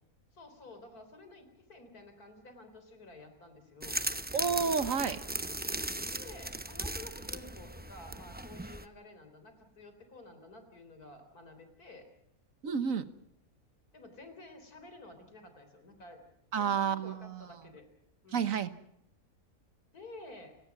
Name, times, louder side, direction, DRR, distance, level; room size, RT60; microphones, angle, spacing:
voice 1, 0.3-4.0 6.1-12.1 13.9-16.2 16.6-17.9 18.2-18.5 19.9-20.5, left 2 dB, 80° left, 8 dB, 4.3 m, -51 dB
sound 1, 3.8-8.8, right 1 dB, 10° right, 0.6 m, -37 dB
voice 2, 4.3-5.2 12.6-13.1 16.5-17.5 18.3-18.7, right 6 dB, 65° right, 12 dB, 1.5 m, -30 dB
29.5 x 18.5 x 6.0 m, 0.75 s
omnidirectional pair, 1.6 m